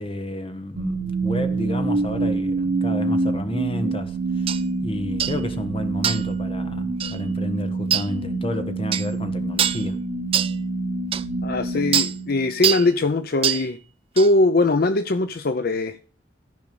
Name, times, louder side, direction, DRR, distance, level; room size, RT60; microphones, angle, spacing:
voice 1, 0.0-10.0, left 1 dB, 30° left, 1.2 m, -31 dB
sound 1, 0.8-12.9, right 3 dB, 70° right, 2.1 m, -26 dB
sound 2, 4.5-4.6 5.2-5.4 6.0-6.3 7.0-7.2 7.9-8.1 8.9-9.1 9.6-9.8 10.3-10.5 11.1-11.2 11.9-12.1 12.6-12.9 13.4-13.6 14.2-14.3, right 9 dB, 30° right, 0.5 m, -23 dB
voice 2, 11.4-13.8 14.1-16.0, left 2 dB, 55° left, 0.6 m, -21 dB
14.0 x 5.2 x 6.8 m
head